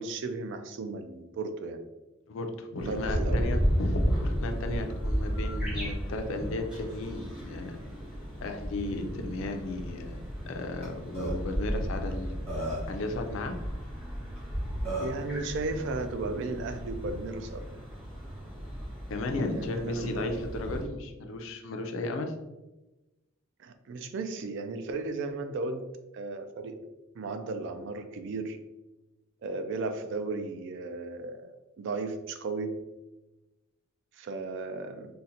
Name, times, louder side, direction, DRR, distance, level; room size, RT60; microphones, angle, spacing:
voice 1, 0.0-1.8 2.8-3.5 15.0-17.6 19.5-20.6 23.6-25.9 26.1-26.9 27.1-28.6 29.4-32.8 34.1-35.1, right 3 dB, 55° right, 7 dB, 0.3 m, -35 dB
voice 2, 2.3-7.8 8.4-10.2 10.5-12.4 12.9-13.6 19.1-22.3, left 2 dB, 60° left, 5 dB, 0.4 m, -34 dB
sound 1, 2.8-20.8, equal, 5° right, 0.7 m, -34 dB
Burping eructation, 10.8-10.9 11.1-11.3 12.1-12.2 12.5-13.0 14.4-14.5 14.8-15.2, right 1 dB, 30° right, 1.2 m, -33 dB
3.8 x 2.1 x 2.7 m, 1.0 s
head